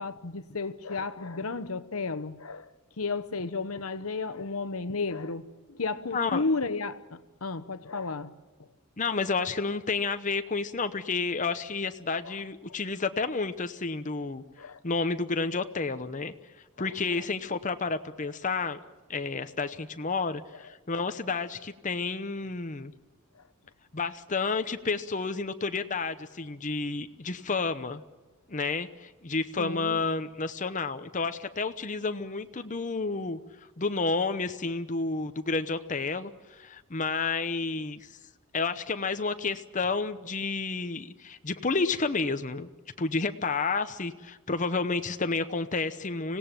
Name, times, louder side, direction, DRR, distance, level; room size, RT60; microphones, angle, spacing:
voice 1, 0.0-2.7 3.0-8.3 9.4-9.5 14.6-14.8 16.8-16.9 29.6-30.0, left 3 dB, 70° left, 1.1 m, -33 dB
voice 2, 6.1-6.4 9.0-14.4 14.8-16.3 16.8-18.8 19.1-22.9 23.9-28.0 28.5-33.4 33.8-38.1 38.5-42.7 43.0-46.4, left 4 dB, 35° left, 0.9 m, -30 dB
25.5 x 17.0 x 9.0 m
head